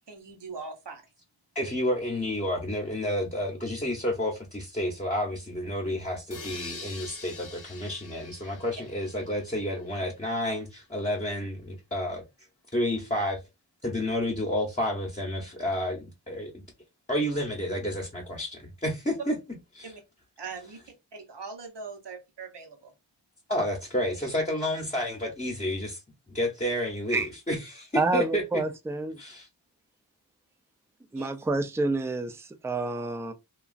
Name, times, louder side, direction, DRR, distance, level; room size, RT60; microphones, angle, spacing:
voice 1, 0.1-1.0 19.8-20.0 20.4-20.8 21.1-22.9 31.1-31.3, right 4 dB, 80° right, 0.8 m, -41 dB
voice 2, 1.5-12.2 12.7-13.4 13.8-16.6 17.1-19.4 19.7-19.9 23.5-26.0 26.3-28.4 29.2-29.5, left 1 dB, 20° left, 0.8 m, -30 dB
sound 1, 6.3-10.1, left 4 dB, 50° left, 0.7 m, -44 dB
voice 3, 27.9-29.2 31.1-33.3, right 3 dB, 5° right, 0.3 m, -28 dB
2.9 x 2.3 x 2.4 m
wide cardioid pair, 55°, 41 cm